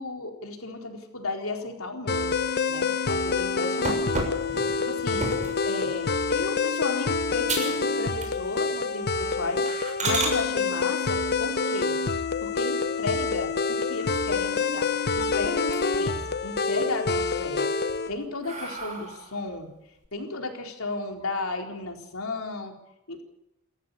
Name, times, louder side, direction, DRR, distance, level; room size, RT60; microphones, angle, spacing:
voice 1, 0.0-2.4 2.7-4.0 4.8-5.3 5.7-9.7 10.0-12.0 12.4-17.7 18.1-19.7 20.1-22.7 23.1-23.2, left 2 dB, 70° left, 3 dB, 4.3 m, -34 dB
sound 1, 2.1-18.1, left 4 dB, 50° left, 1.1 m, -27 dB
sound 2, 3.8-5.6 6.2-6.5 6.9-7.0 7.4-7.8 8.1-8.7 9.0-9.1 9.7-10.4 12.4-13.0 13.5-13.6 14.0-14.1 14.4-15.2 15.5-16.1 16.5-17.2 17.7-19.4, right 2 dB, 35° right, 6.5 m, -33 dB
29.0 x 14.5 x 7.0 m, 0.87 s
head